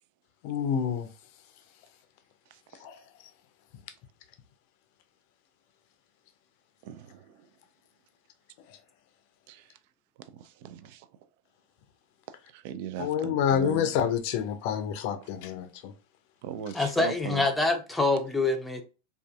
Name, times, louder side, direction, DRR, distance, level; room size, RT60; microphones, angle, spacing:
voice 1, 0.4-1.1 2.8-3.0 13.0-15.9, left 8 dB, 60° left, 0.5 m, -28 dB
voice 2, 6.8-7.3 9.5-9.7 10.2-11.1 12.5-13.9 16.4-17.5, right 10 dB, 60° right, 0.3 m, -39 dB
voice 3, 16.7-18.8, left 3 dB, 5° left, 0.5 m, -26 dB
2.6 x 2.4 x 2.3 m
hypercardioid pair, 100°, 0 cm